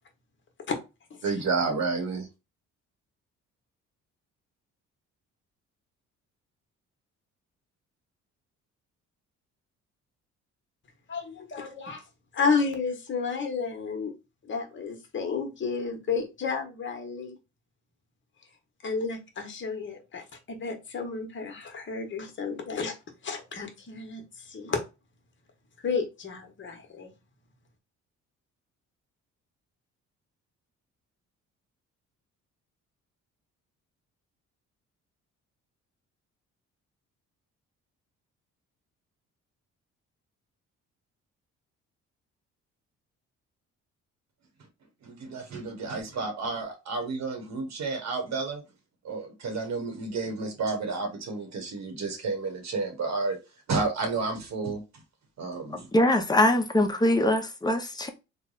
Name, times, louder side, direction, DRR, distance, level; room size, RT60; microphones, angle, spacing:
voice 1, 1.2-2.3 45.0-48.6 49.0-53.4 53.7-54.8 55.4-55.9, right 4 dB, 65° right, 1.0 m, -31 dB
voice 2, 11.1-12.0 12.3-14.1 14.4-17.4 18.8-22.9 23.2-24.8 25.8-27.1, left 5 dB, 40° left, 1.1 m, -31 dB
voice 3, 55.9-58.1, left 1 dB, 15° left, 0.7 m, -23 dB
3.2 x 2.1 x 3.8 m
cardioid pair, 90°, 30 cm